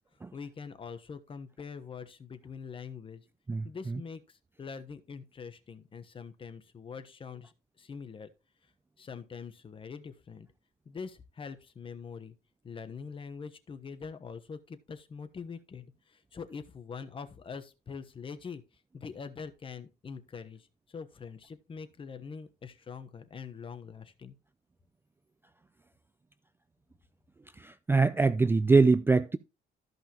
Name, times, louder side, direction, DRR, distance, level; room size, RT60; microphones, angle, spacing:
voice 1, 0.3-3.2 3.6-8.3 9.0-10.5 10.8-12.3 12.6-18.6 18.9-24.3, left 5 dB, 30° left, 1.1 m, -44 dB
voice 2, 3.5-4.0 27.6-29.4, right 4 dB, 15° right, 0.4 m, -24 dB
13.5 x 5.4 x 3.0 m
cardioid pair, 110°, 17 cm